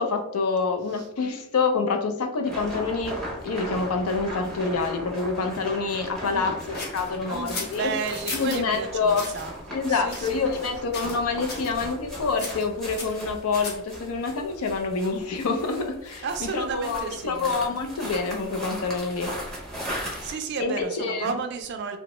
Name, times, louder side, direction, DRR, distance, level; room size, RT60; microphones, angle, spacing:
voice 1, 0.0-3.2 3.4-6.6 6.9-7.9 8.3-9.3 9.7-19.3 20.6-21.3, left 4 dB, 80° left, 5 dB, 0.5 m, -27 dB
sound 1, 2.4-20.3, equal, ahead, 0.5 m, -38 dB
voice 2, 6.3-6.6 7.3-10.5 16.2-17.6 20.2-22.0, right 5 dB, 50° right, 6 dB, 0.3 m, -33 dB
sound 2, 6.7-8.6 9.1-9.5 10.1-10.7 10.9-11.2 11.5-11.7 12.4-13.9, left 3 dB, 45° left, 0.7 m, -36 dB
2.7 x 2.1 x 3.0 m, 0.77 s
head